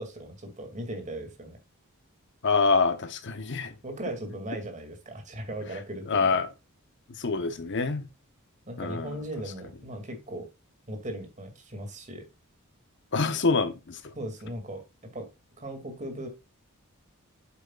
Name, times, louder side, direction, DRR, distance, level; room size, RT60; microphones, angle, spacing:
voice 1, 0.0-1.6 3.8-6.4 8.7-10.5 10.9-12.2 14.2-14.8 15.1-15.3 15.6-16.3, right 1 dB, 35° right, 2.3 m, -38 dB
voice 2, 2.4-3.7 6.1-6.5 7.2-8.0 8.8-9.2 13.1-14.0, left 4 dB, 55° left, 0.9 m, -26 dB
8.4 x 8.0 x 2.4 m
head